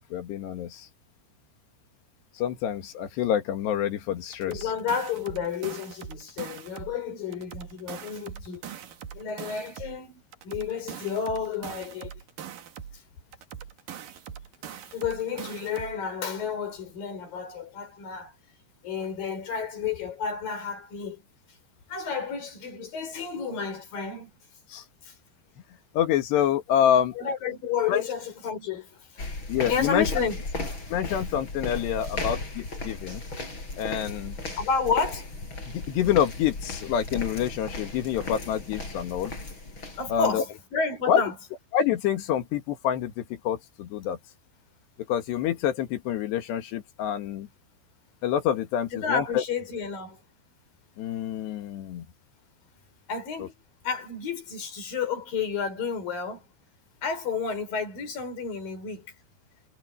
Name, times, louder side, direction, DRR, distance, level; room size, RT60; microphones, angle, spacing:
voice 1, 0.1-0.9 2.4-4.5 24.7-24.8 26.0-27.2 27.9-28.0 29.5-30.1 30.9-33.2 33.8-34.4 35.7-39.3 40.1-40.4 41.1-41.2 41.7-44.2 45.1-47.5 48.2-49.4 51.0-52.1, left 9 dB, 75° left, 3.9 m, -27 dB
sound 1, 4.3-7.0 7.3-10.0 10.3-13.0 13.3-16.0, right 8 dB, 55° right, 3.1 m, -42 dB
voice 2, 4.5-8.6 9.1-12.1 14.9-18.3 18.8-21.2 21.9-24.3 25.0-25.2 27.2-29.2 29.7-30.5 34.6-35.3 40.0-41.4 48.9-50.2 53.1-53.5 53.8-56.4 57.0-59.1, left 6 dB, 55° left, 6.9 m, -31 dB
sound 2, 29.2-40.3, left 2 dB, 25° left, 7.3 m, -36 dB
omnidirectional pair, 5.0 m